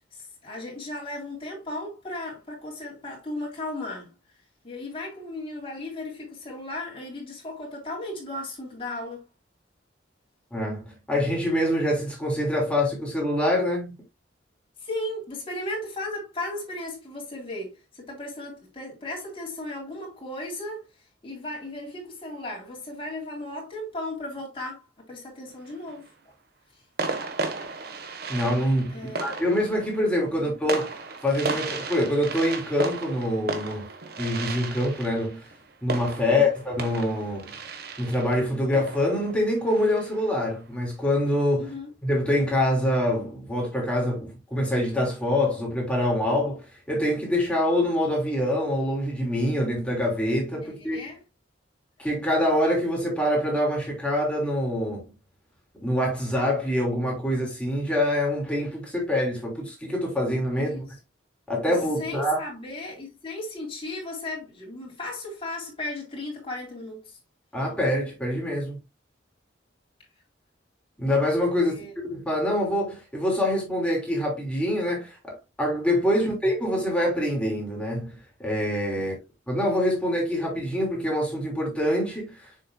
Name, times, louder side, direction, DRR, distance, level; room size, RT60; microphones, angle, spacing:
voice 1, 0.1-4.1 4.6-9.2 14.8-20.8 21.2-24.8 25.1-26.1 28.9-29.4 30.4-30.5 41.6-41.9 50.6-51.2 60.5-60.9 61.7-67.0 71.6-71.9 79.0-79.2, left 2 dB, 30° left, 3.4 m, -36 dB
voice 2, 10.5-13.9 28.3-30.9 31.2-33.9 34.2-35.4 35.8-37.6 38.0-41.7 42.0-51.0 52.0-55.1 55.8-60.8 61.5-62.4 67.5-68.8 71.0-71.7 72.0-78.1 78.4-79.1 79.5-82.3, left 1 dB, 5° left, 3.4 m, -25 dB
sound 1, 25.5-26.1 27.0-40.4, right 3 dB, 55° right, 1.3 m, -35 dB
7.4 x 6.6 x 2.2 m
head